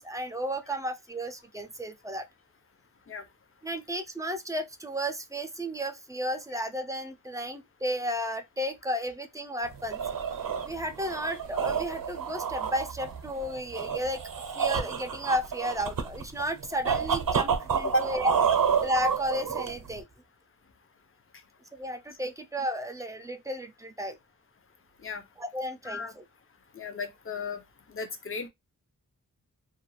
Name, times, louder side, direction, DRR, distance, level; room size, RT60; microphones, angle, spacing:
voice 1, 0.0-2.3 3.6-10.0 10.6-14.2 14.5-18.3 18.8-20.1 21.8-24.2 25.4-26.2, equal, 10° right, 0.4 m, -33 dB
sound 1, 9.7-20.0, right 7 dB, 75° right, 0.6 m, -30 dB
voice 2, 26.8-27.6 27.9-28.5, left 1 dB, 40° left, 0.6 m, -32 dB
2.4 x 2.2 x 3.1 m
wide cardioid pair, 115°, 34 cm